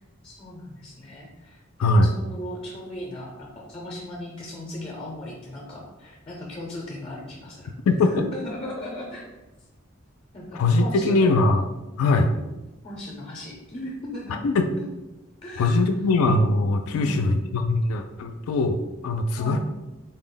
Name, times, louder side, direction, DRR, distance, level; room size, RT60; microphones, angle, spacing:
voice 1, 0.2-7.7 8.1-9.3 10.3-11.4 12.3-12.5 12.8-14.4 14.8-14.9 15.4-15.8 16.9-17.3 19.4-19.6, left 1 dB, 25° left, -2 dB, 0.5 m, -37 dB
voice 2, 1.8-2.1 7.9-8.1 10.5-11.7 12.0-12.3 14.4-14.7 15.6-19.6, left 2 dB, 80° left, 6 dB, 0.3 m, -21 dB
3.9 x 2.0 x 3.7 m, 1.0 s
head